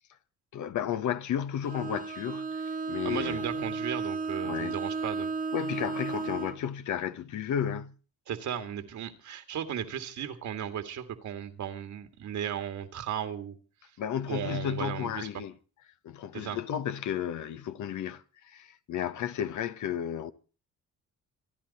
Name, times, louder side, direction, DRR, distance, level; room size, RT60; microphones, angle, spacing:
voice 1, 0.5-3.7 4.4-4.8 5.5-7.9 14.0-15.5 16.0-20.3, left 9 dB, 75° left, 1.2 m, -33 dB
Bowed string instrument, 1.6-6.6, right 4 dB, 30° right, 1.5 m, -34 dB
voice 2, 3.0-5.3 8.3-13.6 14.3-15.3 16.3-16.6, right 9 dB, 70° right, 2.1 m, -35 dB
26.5 x 10.5 x 4.2 m
cardioid pair, 90°, 30 cm